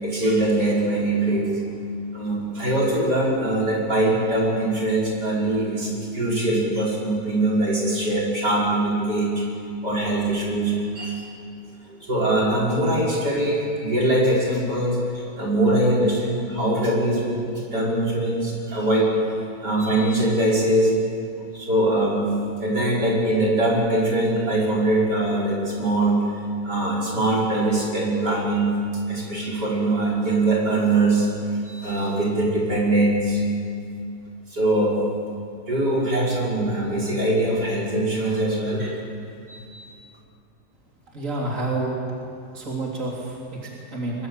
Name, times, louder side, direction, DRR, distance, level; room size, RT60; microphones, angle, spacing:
voice 1, 0.0-1.5 2.1-9.4 9.8-11.2 11.9-17.4 17.7-19.1 19.6-20.9 21.5-26.3 26.6-28.8 29.1-31.3 31.6-33.4 34.5-35.0 35.7-39.0 39.5-39.9, right 1 dB, 90° right, -4 dB, 5.8 m, -22 dB
voice 2, 41.1-42.0 42.5-44.3, right 2 dB, 50° right, -3 dB, 3.9 m, -29 dB
23.5 x 22.5 x 8.1 m, 2.4 s
omnidirectional pair, 1.7 m